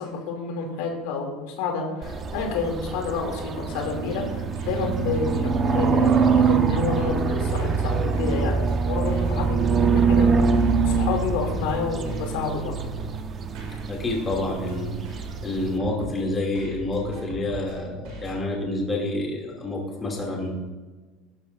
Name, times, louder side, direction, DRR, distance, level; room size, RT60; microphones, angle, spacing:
voice 1, 0.0-12.7, left 4 dB, 80° left, 1 dB, 2.7 m, -29 dB
sound 1, 2.0-15.8, right 5 dB, 30° right, 0.8 m, -24 dB
sound 2, 4.3-18.4, right 2 dB, 70° right, 4.1 m, -40 dB
voice 2, 13.9-15.1 15.4-20.5, left 2 dB, 20° left, -1 dB, 2.6 m, -28 dB
16.5 x 12.0 x 2.6 m, 1.3 s
cardioid pair, 150°, 0 cm